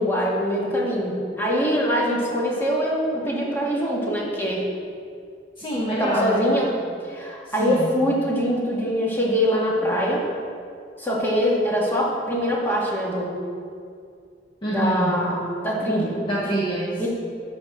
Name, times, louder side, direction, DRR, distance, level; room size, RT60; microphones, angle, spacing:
voice 1, 0.0-4.7 5.9-6.7 7.1-10.2 11.0-13.4 14.7-16.2 17.0-17.1, equal, 15° left, -5 dB, 2.0 m, -23 dB
voice 2, 5.6-6.7 7.4-7.9 14.6-15.2 16.2-17.1, right 1 dB, 30° left, -6 dB, 1.2 m, -26 dB
12.5 x 4.3 x 6.4 m, 2.3 s
head